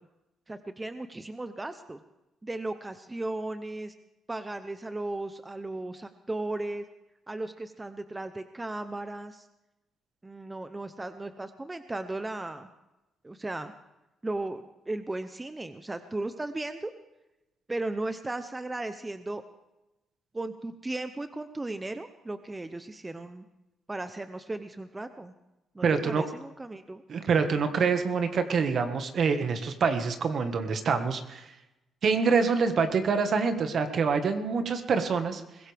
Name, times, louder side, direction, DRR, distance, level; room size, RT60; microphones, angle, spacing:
voice 1, 0.5-2.0 2.4-3.9 4.3-6.9 7.3-9.5 10.2-12.7 13.2-13.7 14.2-16.9 17.7-19.4 20.3-23.4 23.9-25.3 25.7-27.0, right 2 dB, 15° right, 9 dB, 0.8 m, -36 dB
voice 2, 25.8-26.2 27.1-31.4 32.0-35.4, right 5 dB, 55° right, 7 dB, 1.7 m, -26 dB
21.5 x 16.5 x 3.5 m, 0.96 s
cardioid pair, 90°, 0 cm